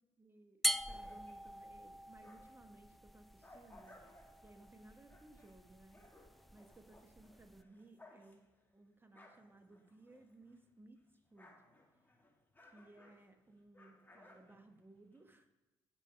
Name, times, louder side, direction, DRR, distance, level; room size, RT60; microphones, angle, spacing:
voice 1, 0.2-6.0 6.5-8.4 8.7-11.0 11.3-11.5 12.6-15.5, right 2 dB, 20° right, 6 dB, 1.4 m, -61 dB
sound 1, 0.6-7.6, equal, ahead, 0.3 m, -44 dB
sound 2, 0.9-2.7 3.1-10.7 11.0-15.2, left 1 dB, 15° left, 2.1 m, -64 dB
9.1 x 5.4 x 4.5 m, 1.0 s
hypercardioid pair, 45°, 11 cm